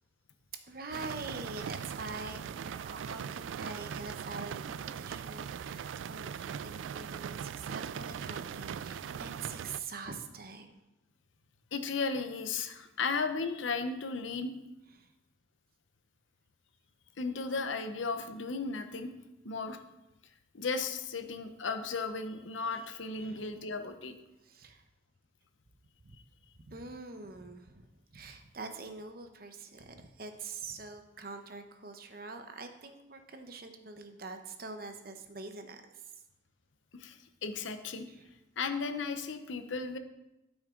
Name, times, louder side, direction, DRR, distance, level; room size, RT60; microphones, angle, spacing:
voice 1, 0.7-10.7 14.9-15.1 21.2-21.4 22.7-23.6 24.4-24.8 26.0-26.2 26.5-36.1 38.1-38.3, right 3 dB, 50° right, 7 dB, 0.8 m, -45 dB
sound 1, 0.9-9.8, right 8 dB, 85° right, 0.3 m, -40 dB
voice 2, 11.7-14.5 17.2-19.1 19.4-19.8 20.5-24.1 36.9-38.1 38.6-40.0, left 4 dB, 85° left, 8 dB, 0.8 m, -35 dB
12.0 x 6.2 x 3.7 m, 0.94 s
head